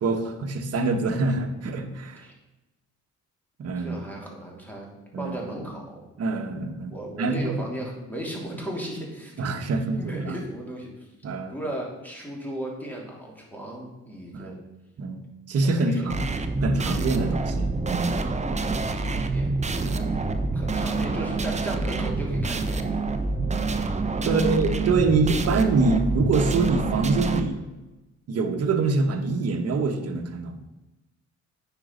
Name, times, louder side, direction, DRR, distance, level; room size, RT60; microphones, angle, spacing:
voice 1, 0.0-2.2 3.6-4.0 5.1-5.4 6.2-7.6 9.4-10.4 11.2-11.5 14.3-14.6 15.0-15.2 15.5-16.2 16.6-18.1 19.8-20.0 24.2-27.6 28.3-30.6, right 3 dB, 55° right, 5 dB, 1.2 m, -25 dB
voice 2, 3.8-4.9 5.2-6.0 6.9-9.3 9.9-11.1 11.5-14.6 15.6-16.1 18.6-19.5 20.5-22.8 24.1-24.5, right 1 dB, 5° left, -2 dB, 3.0 m, -36 dB
sound 1, 16.1-27.4, right 3 dB, 25° right, 0.8 m, -27 dB
9.5 x 5.3 x 5.2 m, 1.0 s
cardioid pair, 90°, 30 cm